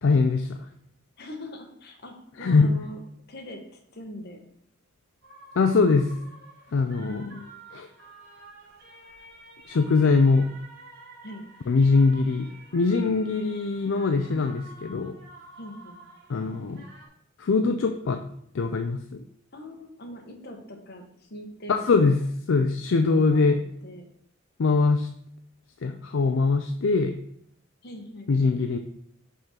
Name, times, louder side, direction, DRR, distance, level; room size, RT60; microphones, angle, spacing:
voice 1, 0.0-0.6 2.4-2.7 5.6-6.1 6.7-7.2 7.7-7.9 9.7-10.5 11.7-12.5 12.7-15.1 16.3-16.8 17.4-18.2 18.5-19.2 21.7-22.2 22.5-23.6 24.6-25.1 25.8-27.1 28.3-28.8, left 4 dB, 70° left, 6 dB, 0.4 m, -22 dB
voice 2, 1.2-3.0 3.3-3.6 3.9-4.4 7.0-7.7 11.2-11.5 15.6-16.0 19.5-22.1 23.2-23.5 23.8-24.0 27.8-28.6, left 1 dB, 55° left, 3 dB, 1.2 m, -41 dB
sound 1, 5.2-17.1, right 2 dB, 55° right, 1.6 m, -49 dB
5.5 x 3.7 x 5.7 m, 0.68 s
head